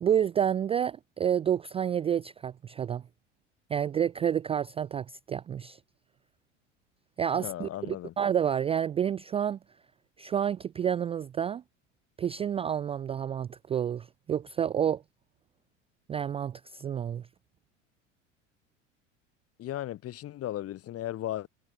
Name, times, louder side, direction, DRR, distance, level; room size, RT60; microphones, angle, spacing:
voice 1, 0.0-3.0 3.7-5.8 7.2-9.6 10.2-11.6 12.2-15.0 16.1-17.3, right 9 dB, 15° right, 0.4 m, -29 dB
voice 2, 7.3-8.1 19.6-21.5, left 13 dB, 40° left, 2.2 m, -36 dB
figure-of-eight pair, 80°, 37 cm